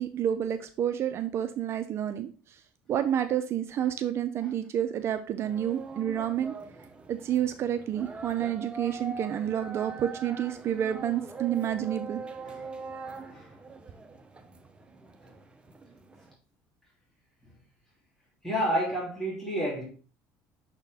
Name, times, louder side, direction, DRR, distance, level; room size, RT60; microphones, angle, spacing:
voice 1, 0.0-2.6 2.9-6.5 7.1-12.2, right 10 dB, 45° right, 9 dB, 0.5 m, -29 dB
sound 1, 5.4-16.3, right 4 dB, 15° right, 0.8 m, -43 dB
voice 2, 18.4-19.8, equal, 5° left, -6 dB, 2.8 m, -30 dB
6.2 x 4.4 x 3.4 m, 0.39 s
supercardioid pair, 110°, 6 cm